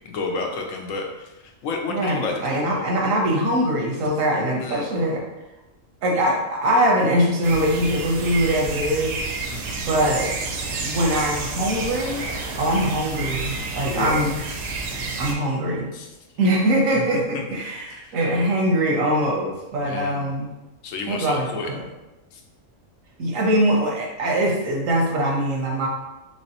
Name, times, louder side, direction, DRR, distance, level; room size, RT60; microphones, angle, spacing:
voice 1, 0.0-1.3 1.6-2.8 4.6-4.9 9.5-9.8 13.9-14.2 15.9-16.1 17.1-17.2 17.9-18.2 19.8-20.3 20.8-21.7 22.3-22.4, left 3 dB, 85° left, 2 dB, 1.0 m, -31 dB
voice 2, 1.9-5.2 6.0-9.2 9.9-10.3 10.8-12.3 12.6-14.4 15.2-15.9 16.4-20.5 21.1-21.8 23.2-25.9, right 1 dB, 80° right, 0 dB, 1.2 m, -22 dB
sound 1, 7.4-15.3, right 3 dB, 65° right, 0.7 m, -30 dB
3.3 x 3.1 x 2.8 m, 1.0 s
omnidirectional pair, 1.3 m